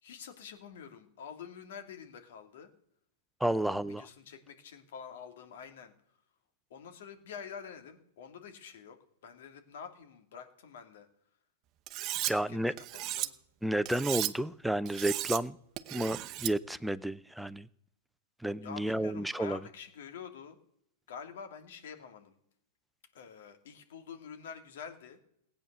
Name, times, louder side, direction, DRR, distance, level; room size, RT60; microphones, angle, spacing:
voice 1, 0.0-2.7 3.5-5.9 6.7-11.1 12.3-12.6 12.9-13.3 18.6-20.6 21.1-22.4 23.1-25.2, left 7 dB, 70° left, 2.6 m, -47 dB
voice 2, 3.4-4.0 12.3-12.7 13.6-15.6 15.9-17.7 18.4-19.6, right 1 dB, ahead, 0.5 m, -31 dB
Cutlery silverware, 11.9-12.3 12.8-13.3 13.9-14.3 14.9-15.4 15.8-16.5, right 15 dB, 40° right, 0.8 m, -35 dB
17.0 x 9.0 x 6.7 m
hypercardioid pair, 130°, 0 cm